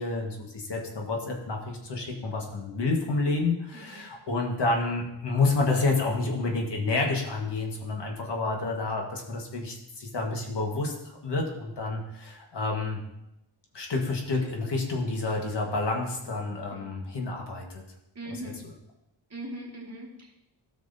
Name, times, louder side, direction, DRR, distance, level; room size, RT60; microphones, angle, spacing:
voice 1, 0.0-10.9 11.2-13.0 13.7-17.8, left 3 dB, 65° left, 1 dB, 1.6 m, -29 dB
voice 2, 3.7-4.1 16.7-17.0 18.2-18.6 19.3-20.3, right 1 dB, 35° right, -2 dB, 1.9 m, -40 dB
13.0 x 6.2 x 2.7 m, 0.87 s
wide cardioid pair, 100°, 45 cm